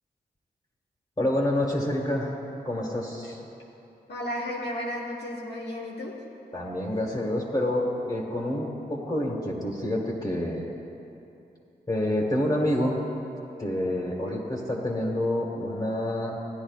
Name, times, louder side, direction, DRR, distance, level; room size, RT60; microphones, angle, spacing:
voice 1, 1.2-2.3 2.6-3.4 6.5-10.6 11.9-13.1 13.6-16.5, left 1 dB, 25° left, -3 dB, 1.7 m, -28 dB
voice 2, 4.1-6.2 14.3-14.4, left 1 dB, 80° left, -3 dB, 1.5 m, -34 dB
15.5 x 9.8 x 2.4 m, 2.8 s
cardioid pair, 50°, 17 cm